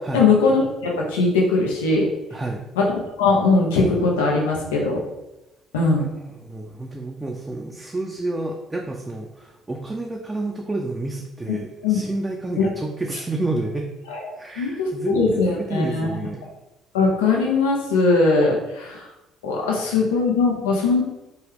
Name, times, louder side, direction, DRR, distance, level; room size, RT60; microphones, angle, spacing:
voice 1, 0.1-2.0 2.8-2.9 3.2-5.0 5.7-6.1 11.8-12.0 12.6-12.7 14.1-14.2 14.6-16.1 16.9-19.0 19.4-21.0, left 3 dB, 90° left, -2 dB, 0.5 m, -20 dB
voice 2, 2.3-2.6 6.0-13.9 14.4-16.5 20.0-20.1, right 2 dB, 20° right, 0 dB, 0.4 m, -30 dB
3.0 x 2.2 x 3.3 m, 0.95 s
hypercardioid pair, 60°, 0 cm